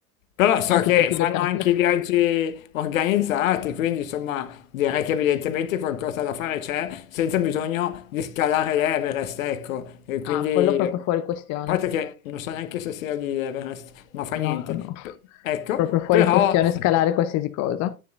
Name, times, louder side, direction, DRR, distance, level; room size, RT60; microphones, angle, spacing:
voice 1, 0.4-11.0 11.7-14.9 15.4-15.9 16.1-16.6, left 11 dB, 70° left, 1.2 m, -24 dB
voice 2, 1.1-1.7 10.2-11.8 14.4-15.1 15.8-17.9, left 12 dB, 40° left, 0.7 m, -24 dB
9.8 x 9.3 x 2.5 m
hypercardioid pair, 80°, 42 cm